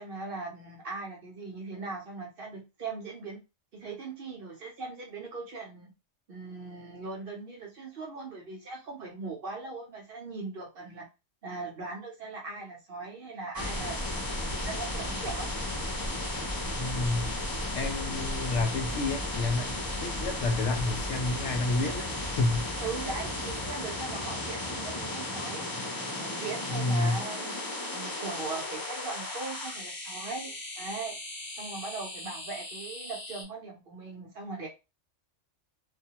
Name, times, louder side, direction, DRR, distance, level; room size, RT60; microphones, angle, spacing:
voice 1, 0.0-3.4 3.7-5.9 6.3-11.1 11.4-15.5 22.8-25.7 26.2-31.2 31.6-34.7, right 3 dB, 55° right, 0.8 m, -39 dB
sound 1, 13.5-33.4, left 1 dB, 20° left, 0.6 m, -35 dB
voice 2, 16.7-17.3 17.7-22.8 26.7-27.2, left 2 dB, 70° left, 0.8 m, -30 dB
2.3 x 2.2 x 2.8 m
omnidirectional pair, 1.3 m